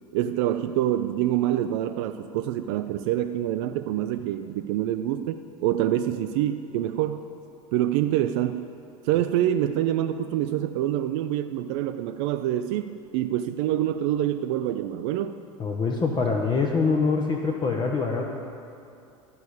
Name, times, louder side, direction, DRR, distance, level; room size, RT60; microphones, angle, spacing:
voice 1, 0.1-7.3 7.7-8.6 9.0-15.4, right 12 dB, 55° right, 8 dB, 0.4 m, -26 dB
voice 2, 15.6-18.2, left 4 dB, 25° left, 1 dB, 0.9 m, -24 dB
12.5 x 5.2 x 8.2 m, 2.6 s
figure-of-eight pair, 75°, 17 cm